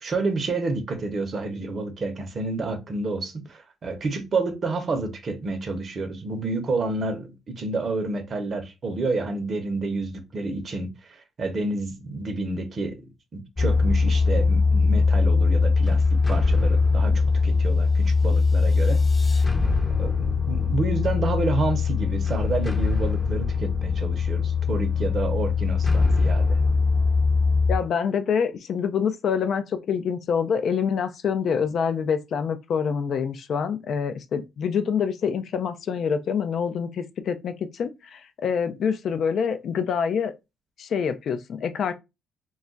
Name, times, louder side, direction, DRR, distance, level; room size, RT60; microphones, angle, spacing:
voice 1, 0.0-13.0 13.3-19.0 20.0-26.6, right 3 dB, 45° right, 0.7 m, -29 dB
sound 1, 13.6-27.8, left 4 dB, 20° left, 0.6 m, -21 dB
voice 2, 27.7-40.3 40.8-41.9, left 7 dB, 60° left, 0.4 m, -26 dB
2.3 x 2.2 x 3.7 m
cardioid pair, 90°, 0 cm